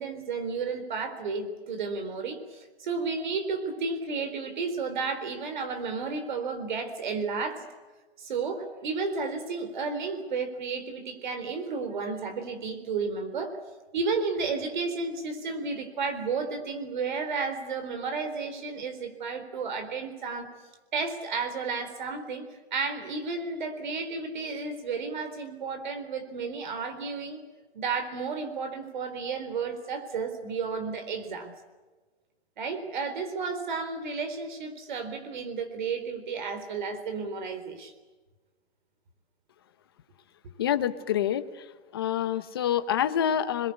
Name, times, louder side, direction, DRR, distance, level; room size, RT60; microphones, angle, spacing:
voice 1, 0.0-7.7 8.2-13.6 13.9-20.5 20.9-27.4 27.7-31.5 32.6-37.9, right 4 dB, 45° right, 8 dB, 4.0 m, -32 dB
voice 2, 40.6-41.7 41.9-43.7, left 10 dB, 20° left, 12 dB, 0.8 m, -27 dB
27.5 x 21.5 x 8.4 m, 1.2 s
hypercardioid pair, 175°, 32 cm